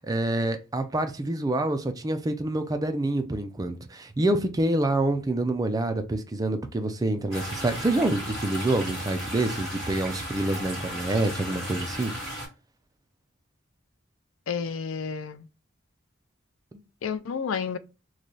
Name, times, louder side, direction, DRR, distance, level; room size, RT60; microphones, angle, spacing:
voice 1, 0.1-12.1, right 2 dB, 20° right, 0.4 m, -27 dB
sound 1, 7.3-12.5, equal, ahead, 1.8 m, -35 dB
voice 2, 14.5-15.5 17.0-17.8, left 6 dB, 75° left, 0.4 m, -30 dB
3.1 x 2.2 x 3.8 m
head